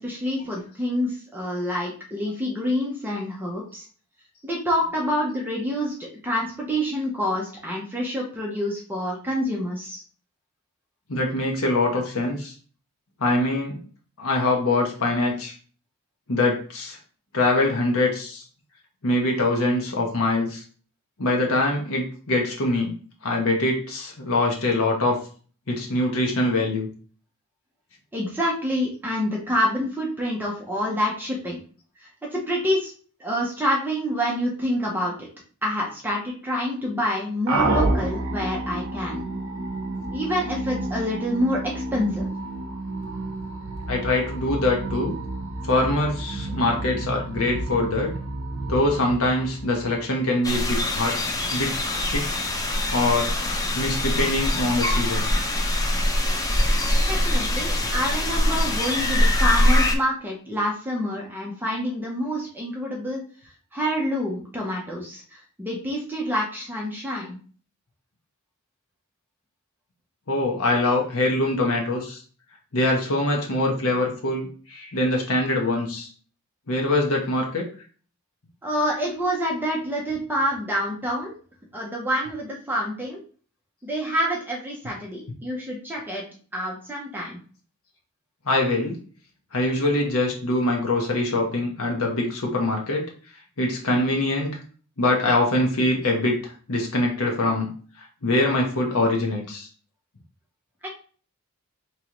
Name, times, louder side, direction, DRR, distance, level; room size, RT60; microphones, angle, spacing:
voice 1, 0.0-3.9 4.4-10.0 28.1-31.6 32.0-32.9 33.2-35.3 35.6-39.3 40.1-42.3 57.0-63.2 63.7-67.4 78.6-81.3 81.7-83.2 83.8-86.2 86.5-87.4 100.8-100.9, equal, 10° right, -3 dB, 0.7 m, -27 dB
voice 2, 11.1-12.5 13.2-13.8 14.2-15.5 16.3-17.0 17.3-18.4 19.0-20.6 21.2-22.9 23.2-25.2 25.7-26.9 43.9-45.1 45.6-48.1 48.7-51.2 51.5-51.7 52.1-52.2 52.9-53.3 53.7-55.3 70.3-72.2 72.7-76.1 76.7-77.7 88.5-89.0 89.5-93.1 93.6-94.5 95.0-96.4 96.7-97.7 98.2-99.7, left 2 dB, 65° left, 0 dB, 0.9 m, -23 dB
sound 1, 37.5-50.3, right 2 dB, 65° right, 0.7 m, -30 dB
sound 2, 50.4-60.0, left 1 dB, 15° left, 0.4 m, -23 dB
3.6 x 3.0 x 3.0 m, 0.41 s
head